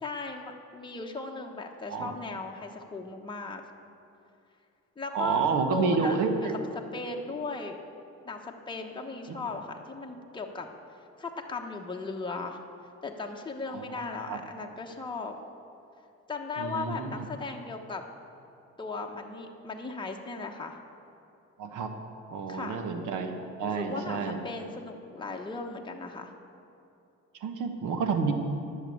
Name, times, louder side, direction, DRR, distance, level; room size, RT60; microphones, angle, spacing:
voice 1, 0.0-3.6 5.0-5.4 5.7-6.5 6.9-7.8 8.2-10.7 11.2-12.6 13.0-15.4 16.3-18.0 18.8-20.8 22.5-22.8 23.6-26.3, left 3 dB, 15° left, 1 dB, 1.0 m, -37 dB
voice 2, 5.1-6.5 9.3-9.4 13.7-14.0 14.3-14.4 16.6-17.3 21.6-21.9 22.3-24.4 27.4-28.3, right 5 dB, 90° right, 6 dB, 1.2 m, -29 dB
10.5 x 7.0 x 8.3 m, 2.8 s
cardioid pair, 90°, 30 cm